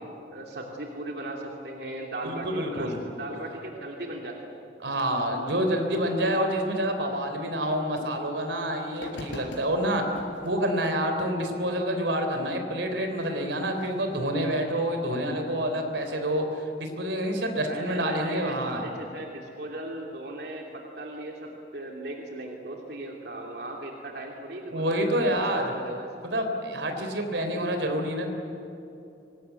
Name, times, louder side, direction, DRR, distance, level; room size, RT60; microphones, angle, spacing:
voice 1, 0.3-4.5 17.6-26.1, right 1 dB, 60° right, 0 dB, 2.9 m, -37 dB
voice 2, 2.2-3.0 4.8-10.0 10.4-18.9 24.7-25.7 26.2-28.3, equal, 80° right, 5 dB, 3.5 m, -28 dB
sound 1, 8.4-8.5 8.9-10.6 11.3-11.4 13.7-14.2, left 1 dB, 80° left, 4.8 m, -42 dB
25.0 x 20.0 x 9.3 m, 2.9 s
head